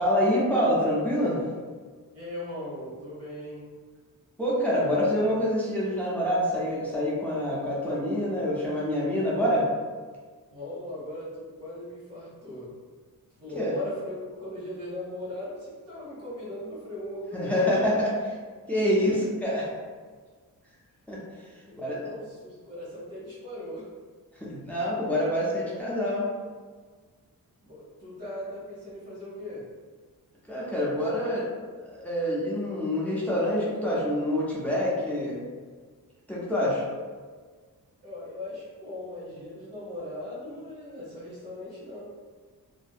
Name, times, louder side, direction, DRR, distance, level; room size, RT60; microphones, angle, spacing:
voice 1, 0.0-1.4 4.4-9.6 13.6-13.7 17.3-18.1 18.7-19.7 21.1-21.2 21.8-22.0 24.4-26.3 30.5-31.5 31.8-35.4 36.3-36.8, equal, 5° left, -7 dB, 0.5 m, -26 dB
voice 2, 2.1-3.6 10.5-12.7 13.4-17.9 19.1-19.2 21.8-23.9 27.6-29.6 38.0-42.0, left 1 dB, 45° right, -8 dB, 1.2 m, -38 dB
2.6 x 2.0 x 2.4 m, 1.5 s
wide cardioid pair, 155°, 35 cm